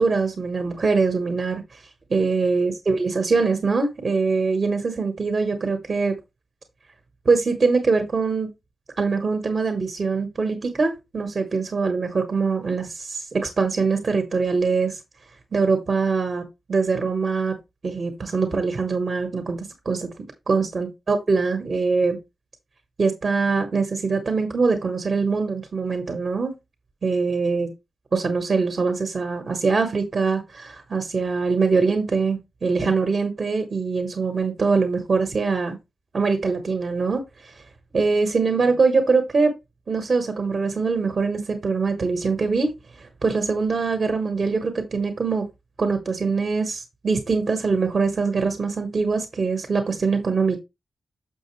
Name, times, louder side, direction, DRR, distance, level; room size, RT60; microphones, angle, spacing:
voice 1, 0.0-1.8 2.1-6.2 7.2-8.5 9.0-15.0 15.5-16.4 16.7-17.5 17.8-20.1 20.5-22.2 23.0-26.5 27.0-27.7 28.1-35.8 36.1-37.6 37.9-39.5 39.9-42.7 43.0-45.4 45.8-50.6, right 4 dB, 35° right, 1.2 m, -23 dB
6.7 x 6.2 x 3.2 m
wide cardioid pair, 170°, 0 cm